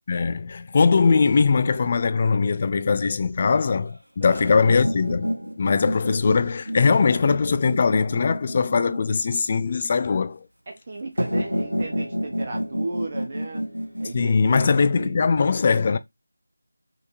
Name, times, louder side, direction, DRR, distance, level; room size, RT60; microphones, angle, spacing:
voice 1, 0.1-5.3 5.6-10.5 14.1-16.0, left 5 dB, 25° left, 0.4 m, -21 dB
sound 1, 0.8-2.8 4.3-9.8 11.2-15.4, equal, 85° right, 1.1 m, -30 dB
voice 2, 4.2-4.5 10.7-13.7 14.0-15.2, right 2 dB, 35° right, 0.8 m, -35 dB
5.4 x 3.1 x 2.5 m
figure-of-eight pair, 165°, 0 cm